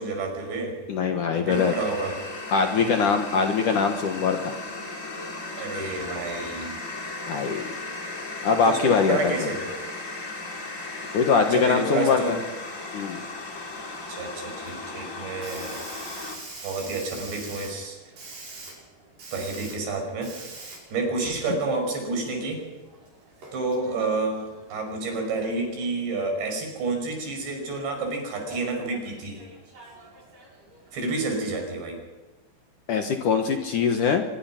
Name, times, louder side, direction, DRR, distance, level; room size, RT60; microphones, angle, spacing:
voice 1, 0.0-0.7 1.3-2.2 5.6-6.8 8.6-9.7 11.5-12.4 14.1-15.8 16.6-18.0 19.3-20.3 20.9-22.6 23.5-29.4 30.9-32.0, right 3 dB, 75° right, 2 dB, 7.6 m, -29 dB
voice 2, 0.9-1.7 2.5-4.5 7.3-7.7 8.4-9.5 11.1-12.4 12.9-13.2 32.9-34.2, left 5 dB, 60° left, 5 dB, 2.4 m, -22 dB
sound 1, 1.5-16.4, left 2 dB, 25° left, 2.0 m, -36 dB
Hiss, 13.2-31.6, right 3 dB, 50° right, 7.5 m, -46 dB
24.5 x 22.5 x 6.0 m, 1.1 s
omnidirectional pair, 5.1 m